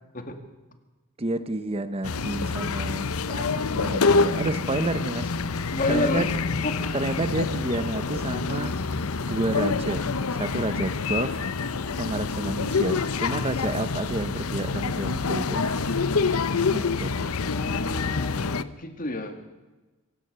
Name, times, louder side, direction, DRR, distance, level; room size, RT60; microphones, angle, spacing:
voice 1, 1.2-5.3 5.6-6.3 6.9-8.7 9.3-10.1 10.3-11.5 12.0-15.6 16.7-17.1, right 2 dB, 25° right, 12 dB, 0.8 m, -30 dB
sound 1, 2.0-18.6, left 4 dB, 75° left, 0.8 m, -27 dB
sound 2, 3.6-18.0, equal, 5° left, 6.9 m, -47 dB
voice 2, 5.7-6.3 6.6-6.8 17.5-19.4, left 2 dB, 40° left, 7 dB, 2.2 m, -29 dB
26.0 x 16.5 x 6.8 m, 1.1 s
head